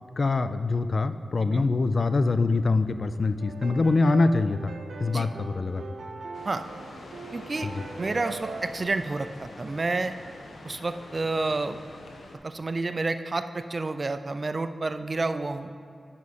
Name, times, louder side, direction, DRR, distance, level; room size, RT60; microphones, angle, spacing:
voice 1, 0.2-4.7 5.0-5.8 7.6-7.8, left 3 dB, 50° left, 11 dB, 0.3 m, -24 dB
sound 1, 3.4-8.9, right 4 dB, 90° right, 0.6 m, -40 dB
sound 2, 6.3-12.4, left 2 dB, 85° left, 0.8 m, -45 dB
voice 2, 7.3-7.7 8.0-10.1 10.6-11.8 12.4-15.7, right 3 dB, 40° right, 10 dB, 0.3 m, -29 dB
9.6 x 5.6 x 4.1 m, 2.4 s
wide cardioid pair, 100°, 0 cm